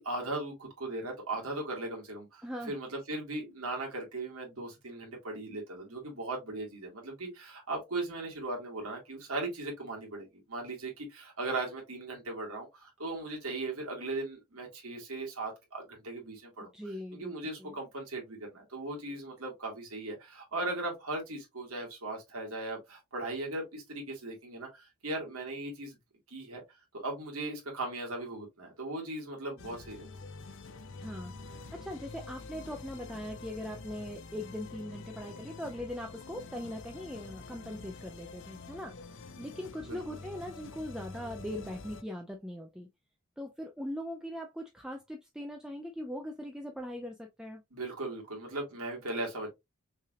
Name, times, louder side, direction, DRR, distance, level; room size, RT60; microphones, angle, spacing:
voice 1, 0.0-16.7 17.1-26.0 26.3-30.1 39.8-40.2 47.7-49.5, right 2 dB, 80° right, 2.0 m, -38 dB
voice 2, 2.4-2.7 16.6-17.3 17.6-17.8 31.0-42.9 43.4-47.6, left 1 dB, 5° right, 0.4 m, -41 dB
sound 1, 29.6-42.0, left 3 dB, 55° left, 0.5 m, -47 dB
5.5 x 3.4 x 2.4 m
head